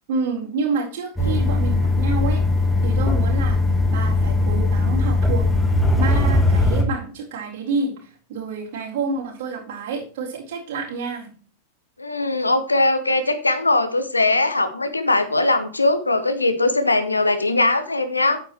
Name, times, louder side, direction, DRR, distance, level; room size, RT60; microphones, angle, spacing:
voice 1, 0.1-2.4 2.8-3.6 3.9-5.4 6.0-11.3, right 4 dB, 50° right, -4 dB, 4.1 m, -28 dB
sound 1, 1.2-6.8, left 2 dB, 5° left, 1.5 m, -19 dB
voice 2, 12.0-18.4, left 2 dB, 80° left, 10 dB, 0.9 m, -20 dB
9.5 x 8.2 x 3.1 m, 0.41 s
figure-of-eight pair, 90°, 0 cm